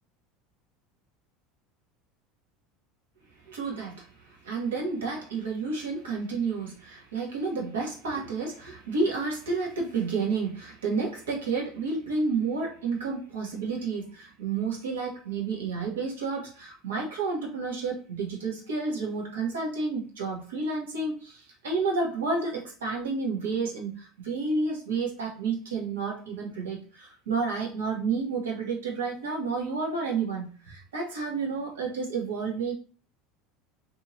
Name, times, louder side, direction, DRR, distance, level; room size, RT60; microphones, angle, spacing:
voice 1, 3.5-32.7, right 4 dB, 85° right, -2 dB, 1.0 m, -30 dB
2.8 x 2.7 x 2.6 m, 0.39 s
hypercardioid pair, 85°, 0 cm